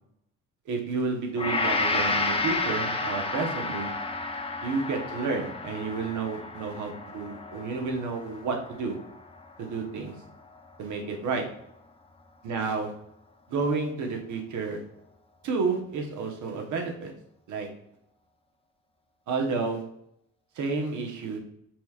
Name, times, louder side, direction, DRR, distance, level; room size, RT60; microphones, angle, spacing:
voice 1, 0.7-3.9 4.6-9.0 9.6-10.1 10.8-11.4 12.4-12.9 13.5-14.8 15.4-17.1 17.5-17.7 19.3-19.8 20.5-21.4, right 4 dB, 75° right, 2 dB, 1.1 m, -30 dB
Gong, 1.4-9.7 10.1-10.3, left 3 dB, 20° left, 0.6 m, -31 dB
5.9 x 3.5 x 2.4 m, 0.76 s
cardioid pair, 90°, 30 cm